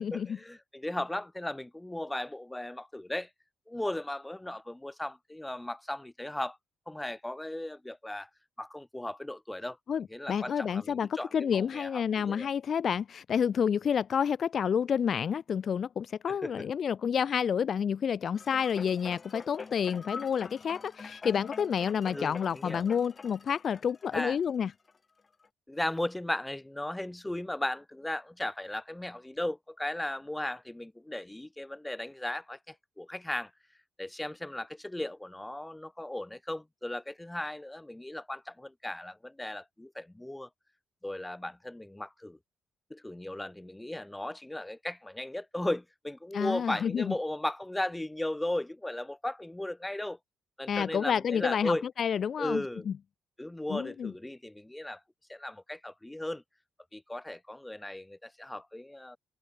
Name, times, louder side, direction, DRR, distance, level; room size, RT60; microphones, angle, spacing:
voice 1, 0.0-3.3 3.7-6.6 6.9-8.3 8.6-9.8 10.1-12.5 16.3-16.7 22.1-22.9 24.1-24.4 25.7-33.5 34.0-40.5 41.0-42.4 42.9-50.2 50.6-51.8 52.4-52.9 53.4-55.0 55.3-56.4 56.9-59.2, left 1 dB, 10° left, 6.0 m, -36 dB
voice 2, 9.9-24.7 46.3-47.1 50.7-52.9 53.7-54.1, left 7 dB, 55° left, 0.8 m, -29 dB
sound 1, 18.3-24.9 25.4-25.5, left 4 dB, 35° left, 2.9 m, -45 dB
open air
cardioid pair, 90°, 0 cm